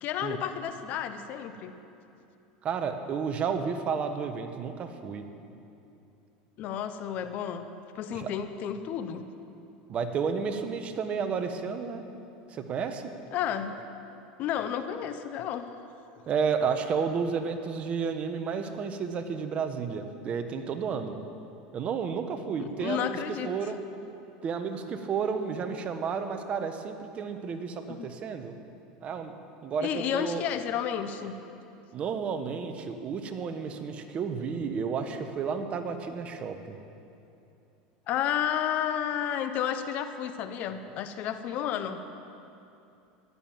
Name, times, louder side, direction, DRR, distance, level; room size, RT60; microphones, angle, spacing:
voice 1, 0.0-1.8 6.6-7.7 7.9-9.3 13.3-13.8 14.4-15.7 22.6-23.5 27.9-28.1 29.8-31.4 38.1-42.0, left 9 dB, 50° left, 9 dB, 1.0 m, -31 dB
voice 2, 2.6-5.2 8.1-8.3 9.9-12.0 12.5-13.0 16.3-21.2 21.7-23.2 23.4-23.8 24.4-28.5 29.0-29.3 29.6-30.4 31.9-36.8, right 6 dB, 35° right, 7 dB, 1.2 m, -31 dB
14.0 x 11.0 x 7.5 m, 2.8 s
supercardioid pair, 115°, 3 cm